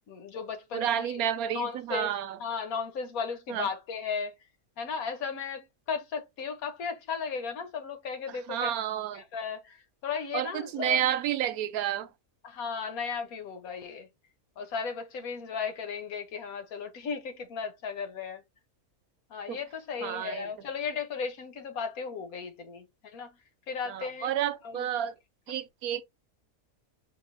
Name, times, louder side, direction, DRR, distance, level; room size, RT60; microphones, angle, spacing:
voice 1, 0.1-2.1 2.4-4.4 4.8-8.7 9.1-11.0 12.4-14.1 14.6-18.4 19.3-23.4 23.7-24.3 24.6-24.9, left 6 dB, 80° left, 1.4 m, -35 dB
voice 2, 0.7-2.4 3.5-3.7 8.5-9.2 10.3-12.1 19.5-19.6 20.0-20.5 23.9-25.1 25.5-26.0, right 10 dB, 85° right, 1.1 m, -30 dB
5.2 x 2.7 x 2.5 m
omnidirectional pair, 1.5 m